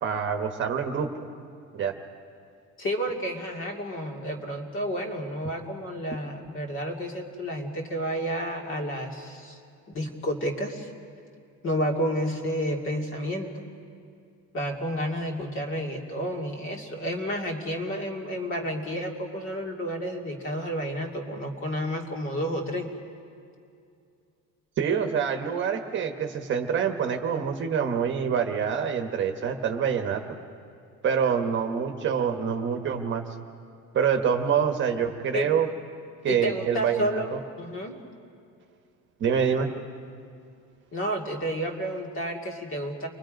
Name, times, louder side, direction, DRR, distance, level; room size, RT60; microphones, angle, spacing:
voice 1, 0.0-1.3 1.7-1.9 24.8-30.2 31.0-33.3 33.9-35.7 36.2-37.4 39.2-39.7, right 7 dB, 35° right, 5 dB, 1.2 m, -26 dB
voice 2, 2.8-9.6 9.9-10.9 11.6-13.6 14.5-22.9 35.3-35.5 36.3-37.3 37.6-38.0 40.9-43.1, equal, 40° left, 1 dB, 2.5 m, -30 dB
29.5 x 23.5 x 5.2 m, 2.4 s
cardioid pair, 170°, 32 cm